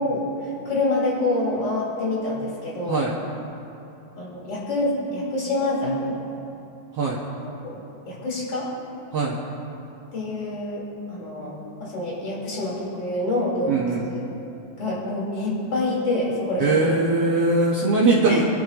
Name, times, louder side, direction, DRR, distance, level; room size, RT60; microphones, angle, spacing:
voice 1, 0.0-3.1 4.2-6.2 7.6-7.8 8.1-8.7 10.1-10.8 11.1-14.2 14.8-17.0 18.3-18.4, left 2 dB, 30° left, -6 dB, 4.4 m, -26 dB
voice 2, 13.7-14.1 16.6-18.4, right 3 dB, 75° right, -5 dB, 1.4 m, -21 dB
26.5 x 12.0 x 3.0 m, 3.0 s
omnidirectional pair, 4.6 m